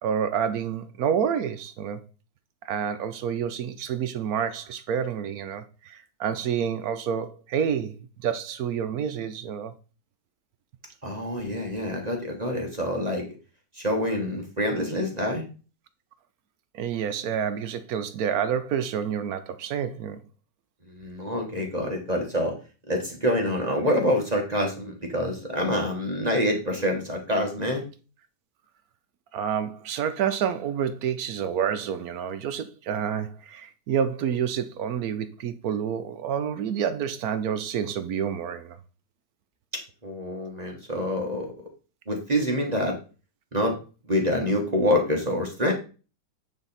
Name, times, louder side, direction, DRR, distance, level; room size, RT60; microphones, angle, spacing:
voice 1, 0.0-2.0 2.6-9.7 16.7-20.2 29.3-38.8, right 8 dB, 65° right, 1.0 m, -28 dB
voice 2, 11.0-13.2 13.7-15.4 20.9-22.5 22.9-27.8 40.0-41.5 42.1-43.0 43.5-43.8 44.1-45.7, equal, 25° right, 1.3 m, -26 dB
8.9 x 3.5 x 4.1 m
omnidirectional pair, 2.0 m